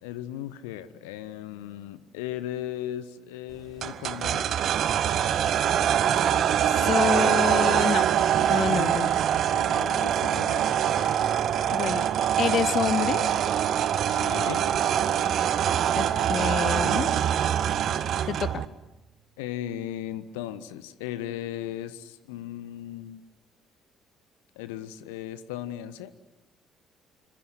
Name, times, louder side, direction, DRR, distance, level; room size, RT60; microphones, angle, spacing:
voice 1, 0.0-4.5 8.4-8.5 9.3-10.7 12.4-12.5 14.1-14.7 19.4-23.2 24.6-26.1, left 12 dB, 70° left, 14 dB, 1.2 m, -37 dB
sound 1, 3.8-18.6, right 9 dB, 50° right, 1.3 m, -24 dB
voice 2, 6.7-8.1 8.5-9.1 11.7-12.1 12.4-13.3 16.0-17.2 18.3-18.6, left 9 dB, 50° left, 20 dB, 1.0 m, -28 dB
Bowed string instrument, 15.1-19.3, right 5 dB, 35° right, 3.2 m, -45 dB
27.0 x 26.0 x 8.0 m, 0.98 s
figure-of-eight pair, 50°, 0 cm